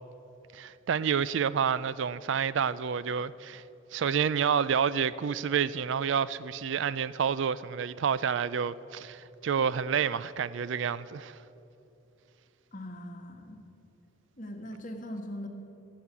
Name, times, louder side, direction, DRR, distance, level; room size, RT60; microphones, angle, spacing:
voice 1, 0.5-3.6 3.9-11.4, right 7 dB, 65° right, 0.4 m, -29 dB
voice 2, 12.7-13.6 14.4-15.5, equal, 40° left, 1.4 m, -40 dB
17.0 x 7.9 x 8.3 m
head